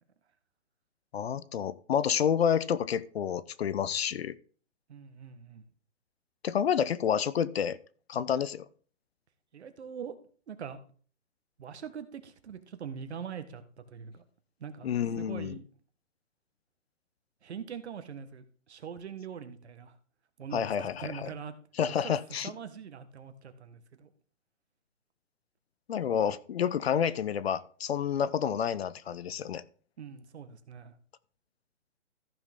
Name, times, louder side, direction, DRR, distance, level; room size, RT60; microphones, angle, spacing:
voice 1, 1.1-4.3 6.4-7.8 8.1-8.7 14.8-15.6 20.5-21.3 21.8-22.5 25.9-29.6, left 8 dB, 55° left, 17 dB, 0.7 m, -29 dB
voice 2, 4.9-5.6 9.5-10.1 10.5-10.8 11.6-14.2 14.6-14.9 15.2-15.7 17.4-19.9 20.4-21.5 22.0-22.1 22.4-24.1 30.0-30.9, right 7 dB, 60° right, 10 dB, 1.5 m, -43 dB
14.5 x 6.2 x 3.6 m, 0.43 s
hypercardioid pair, 155°, 37 cm